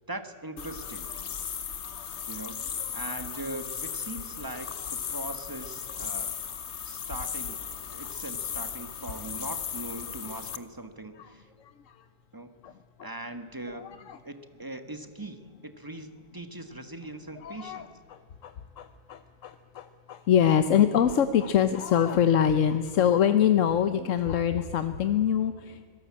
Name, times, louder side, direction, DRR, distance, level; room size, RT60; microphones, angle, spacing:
voice 1, 0.1-1.1 2.3-2.6 2.9-6.3 6.8-7.6 7.9-11.5 12.3-12.5 13.0-13.9 14.2-17.9, right 2 dB, 15° right, 9 dB, 1.4 m, -40 dB
sound 1, 0.6-10.6, left 7 dB, 65° left, 1.3 m, -36 dB
voice 2, 11.6-12.0 12.6-12.7 13.0-13.1 13.7-14.2 17.4-25.9, left 9 dB, 90° left, 11 dB, 1.2 m, -25 dB
25.0 x 17.5 x 8.6 m, 2.1 s
omnidirectional pair, 1.3 m